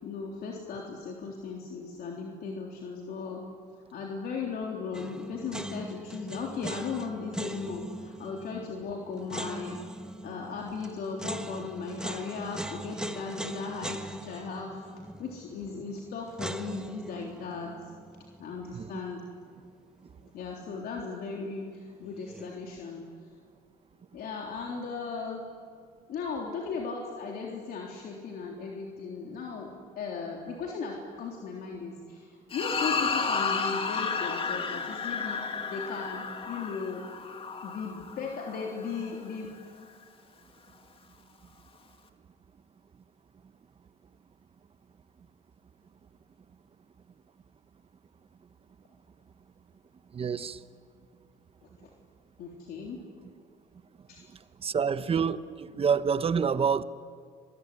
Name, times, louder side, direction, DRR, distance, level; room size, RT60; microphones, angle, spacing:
voice 1, 0.0-3.5 3.9-9.8 10.2-14.8 15.2-17.8 18.4-19.3 20.3-23.0 24.1-25.5 26.1-37.1 37.6-39.5 51.6-51.9 52.4-53.0 54.1-54.3, left 5 dB, 65° left, -1 dB, 3.6 m, -37 dB
sound 1, 4.9-19.9 20.2-20.3 22.0-22.5, right 1 dB, 5° right, 1.5 m, -41 dB
sound 2, 32.5-39.1, left 5 dB, 35° left, 2.3 m, -32 dB
voice 2, 50.1-50.6 54.6-56.8, right 6 dB, 35° right, 13 dB, 1.1 m, -27 dB
27.0 x 22.5 x 9.8 m, 2.1 s
cardioid pair, 110°, 17 cm